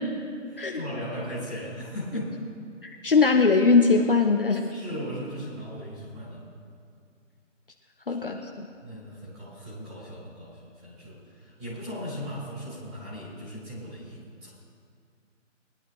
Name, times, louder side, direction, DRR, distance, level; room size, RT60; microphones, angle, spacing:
voice 1, 0.4-2.3 4.7-6.5 8.1-8.4 8.8-14.5, equal, 10° right, -10 dB, 3.6 m, -38 dB
voice 2, 2.8-4.7 8.1-8.7, left 4 dB, 45° left, 2 dB, 0.8 m, -21 dB
21.5 x 11.5 x 3.1 m, 2.3 s
hypercardioid pair, 175°, 38 cm